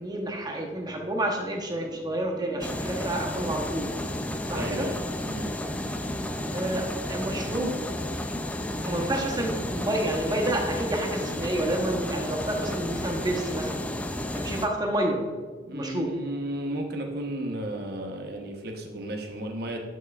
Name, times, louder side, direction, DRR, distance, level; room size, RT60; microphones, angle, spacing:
voice 1, 0.0-3.9 4.5-4.9 6.5-7.8 8.8-13.8 14.3-15.3 15.7-16.1, right 1 dB, 25° right, 2 dB, 0.9 m, -29 dB
sound 1, 2.6-14.7, left 1 dB, 10° left, 0.3 m, -32 dB
voice 2, 4.5-5.0 5.3-5.5 15.6-19.8, right 1 dB, 60° right, 3 dB, 0.8 m, -33 dB
8.2 x 5.9 x 2.3 m, 1.5 s
head